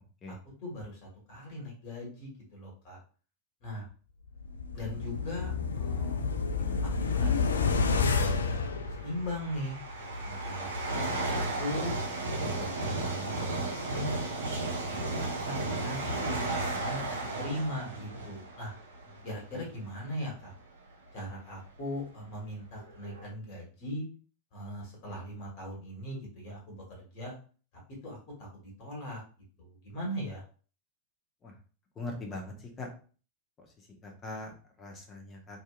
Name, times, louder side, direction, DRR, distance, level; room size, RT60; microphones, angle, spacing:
voice 1, 0.6-3.0 3.6-3.8 4.7-6.3 6.8-7.7 8.2-9.8 10.2-11.9 12.4-14.2 14.8-18.7 19.2-20.5 21.1-24.0 24.5-27.4 28.0-29.2 29.6-30.4, equal, 45° left, -2 dB, 1.4 m, -39 dB
sound 1, 4.4-9.6 9.9-10.0, left 5 dB, 70° left, 0.3 m, -29 dB
sound 2, 6.1-6.4 7.5-7.6 8.4-19.8 20.4-20.6 21.4-21.5 21.7-23.2, right 2 dB, 70° right, 0.6 m, -34 dB
voice 2, 6.5-6.9 19.1-19.3 19.5-19.6 31.4-31.6 32.0-32.9 33.6-35.6, left 2 dB, 25° left, 1 dB, 0.8 m, -42 dB
2.7 x 2.5 x 2.3 m, 0.38 s
figure-of-eight pair, 90°, 0 cm